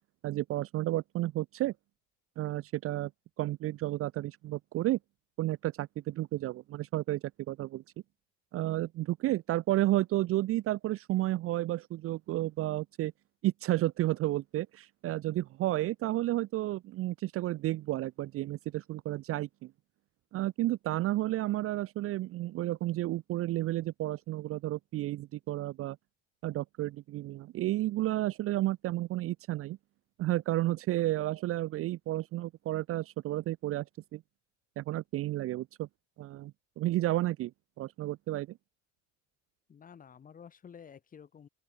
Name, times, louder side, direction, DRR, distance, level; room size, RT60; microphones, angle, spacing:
voice 1, 0.2-1.7 2.4-3.1 3.4-5.0 5.4-7.8 8.5-13.1 13.4-19.7 20.3-26.0 26.4-29.8 30.2-33.8 34.1-34.2 34.8-35.9 36.2-37.5 37.8-38.6, right 16 dB, 45° right, 0.6 m, -32 dB
voice 2, 39.7-41.5, left 7 dB, 25° left, 2.1 m, -51 dB
open air
cardioid pair, 175°, 33 cm